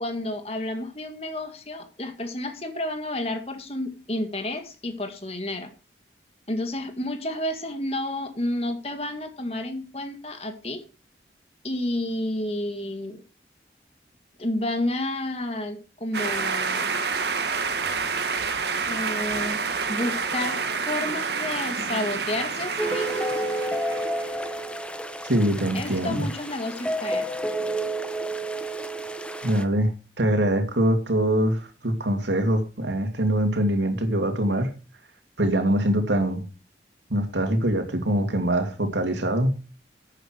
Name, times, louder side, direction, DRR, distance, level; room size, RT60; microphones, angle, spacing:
voice 1, 0.0-5.7 6.5-10.8 11.6-13.2 14.4-16.9 18.9-19.6 19.9-23.3 25.7-27.3, left 1 dB, 35° left, 6 dB, 2.0 m, -30 dB
sound 1, 16.1-24.4, right 5 dB, 70° right, 1.7 m, -28 dB
sound 2, 22.8-29.6, right 1 dB, 5° left, 0.8 m, -30 dB
voice 2, 25.2-26.3 29.4-29.9 30.2-34.7 35.4-36.4 37.1-39.5, right 1 dB, 85° right, 5 dB, 2.8 m, -23 dB
12.5 x 8.9 x 4.6 m, 0.32 s
head